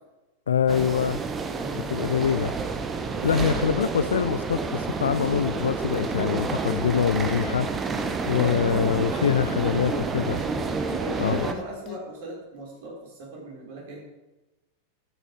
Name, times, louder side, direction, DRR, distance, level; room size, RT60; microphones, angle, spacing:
voice 1, 0.5-1.2 1.7-2.5 3.2-7.7 8.3-10.4 11.2-11.5, left 8 dB, 65° left, 14 dB, 0.4 m, -24 dB
sound 1, 0.7-11.5, right 4 dB, 20° right, 1.1 m, -29 dB
sound 2, 5.2-6.1 6.4-6.9 7.2-8.1 9.2-10.1 10.4-12.0, left 12 dB, 35° left, 1.0 m, -39 dB
voice 2, 10.9-14.0, right 1 dB, 55° right, -3 dB, 4.9 m, -37 dB
13.5 x 9.1 x 5.0 m, 1.1 s
figure-of-eight pair, 90°, 0 cm